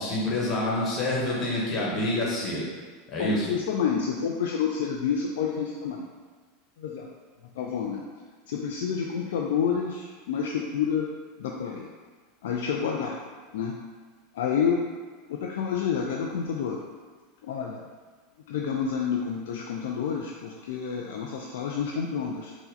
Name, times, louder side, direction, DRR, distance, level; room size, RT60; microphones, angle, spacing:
voice 1, 0.0-2.6 3.1-3.5, left 1 dB, 35° left, -5 dB, 1.2 m, -27 dB
voice 2, 3.2-6.1 6.8-7.1 7.6-8.0 8.5-11.1 11.4-11.9 12.4-13.2 13.5-13.8 14.3-14.8 15.3-16.8 17.4-17.8 18.5-22.5, left 7 dB, 60° left, -1 dB, 0.3 m, -29 dB
4.4 x 2.1 x 3.8 m, 1.4 s
figure-of-eight pair, 80°, 0 cm